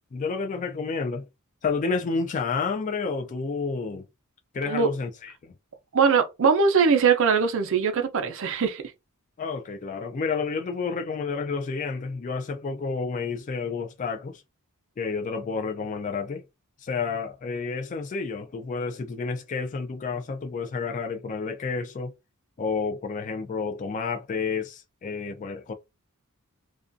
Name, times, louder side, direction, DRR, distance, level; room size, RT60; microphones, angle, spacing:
voice 1, 0.1-1.3 1.6-4.1 4.5-5.5 9.4-14.4 15.0-16.4 16.8-22.1 22.6-25.7, left 4 dB, 35° left, 0.3 m, -30 dB
voice 2, 5.9-8.8, right 5 dB, 60° right, 0.5 m, -21 dB
2.4 x 2.2 x 2.5 m
head